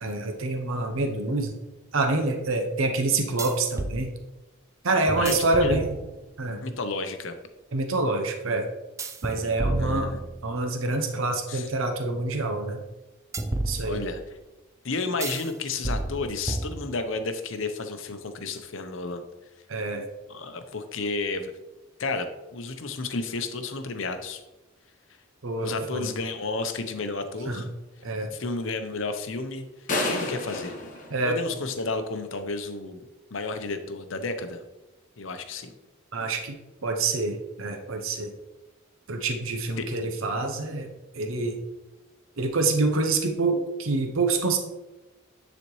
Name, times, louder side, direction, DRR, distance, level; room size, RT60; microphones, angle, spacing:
voice 1, 0.0-1.5 1.9-4.1 4.8-5.9 6.4-6.6 7.7-8.6 9.2-12.8 13.7-14.0 19.7-20.0 25.4-26.1 27.5-27.7 28.0-28.3 31.1-31.4 36.1-36.6 36.8-38.3 39.1-40.9 41.1-41.6 42.4-44.6, right 3 dB, 75° right, 4 dB, 0.8 m, -26 dB
sound 1, 1.0-1.1 3.4-4.0 5.1-6.4 9.0-10.7 13.3-14.3 15.2-15.5 15.8-17.2, right 2 dB, 15° right, 0.3 m, -32 dB
voice 2, 5.2-5.8 6.6-7.3 9.8-10.2 11.5-11.7 13.8-14.2 14.8-19.2 20.3-21.5 22.0-22.3 22.5-24.4 25.6-27.7 28.3-29.7 30.0-30.7 31.2-33.0 33.3-34.6 35.2-35.7 39.8-39.9, left 3 dB, 65° left, 8 dB, 0.7 m, -32 dB
sound 2, 29.9-32.0, left 2 dB, 40° left, 1.1 m, -31 dB
9.7 x 4.2 x 3.1 m, 1.1 s
head